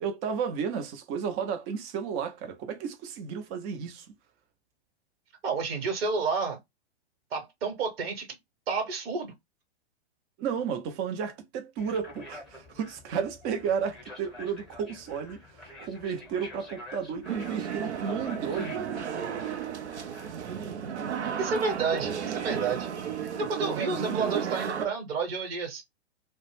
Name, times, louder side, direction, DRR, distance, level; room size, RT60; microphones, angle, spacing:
voice 1, 0.0-4.1 10.4-19.1 23.4-24.4, right 6 dB, 25° right, 0.5 m, -33 dB
voice 2, 5.4-6.6 7.3-8.3 8.7-9.3 21.4-22.9 23.3-25.8, right 4 dB, 60° right, 1.1 m, -30 dB
sound 1, 11.8-22.9, left 2 dB, ahead, 0.9 m, -48 dB
sound 2, 17.2-24.9, right 8 dB, 80° right, 0.6 m, -33 dB
2.3 x 2.1 x 3.0 m
hypercardioid pair, 115°, 33 cm